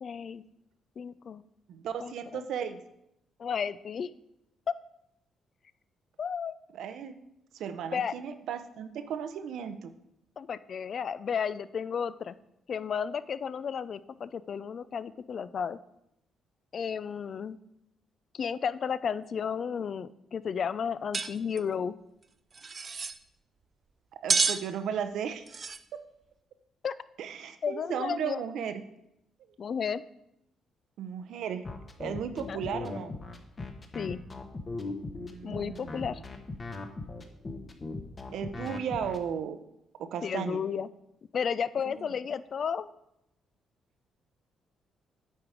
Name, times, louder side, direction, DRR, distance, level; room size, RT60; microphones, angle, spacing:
voice 1, 0.0-0.4 1.0-1.4 2.0-2.4 3.4-4.1 6.2-6.5 7.9-8.1 10.4-12.4 12.7-15.8 16.7-17.6 18.3-21.9 26.8-26.9 27.6-28.4 29.6-30.0 32.5-32.8 33.9-34.2 35.4-36.2 40.2-40.9 41.3-42.9, left 7 dB, 50° left, 16 dB, 0.3 m, -33 dB
voice 2, 1.7-2.8 6.7-7.2 7.5-9.9 24.2-25.4 27.2-28.8 31.0-31.6 32.0-33.1 35.1-36.1 38.3-39.6 40.0-40.6 41.8-42.0, right 8 dB, 75° right, 9 dB, 0.6 m, -35 dB
sound 1, 21.1-21.3 21.6-21.7 22.5-23.2 24.3-24.6 25.5-25.8, right 5 dB, 40° right, 0.4 m, -28 dB
sound 2, 31.6-39.2, left 3 dB, 30° left, 1.0 m, -38 dB
8.7 x 4.7 x 4.9 m, 0.83 s
cardioid pair, 90°, 0 cm